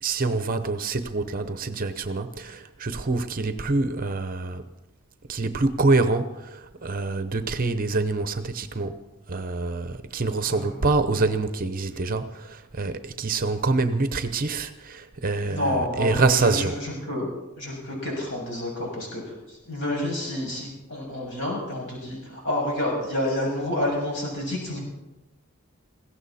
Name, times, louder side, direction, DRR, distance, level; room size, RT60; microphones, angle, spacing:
voice 1, 0.0-4.6 5.3-9.0 9.3-16.8, right 3 dB, 40° right, 0.8 m, -26 dB
voice 2, 15.5-17.3 17.6-19.2 19.5-24.8, left 1 dB, 55° left, 7.1 m, -29 dB
20.5 x 16.5 x 4.2 m
head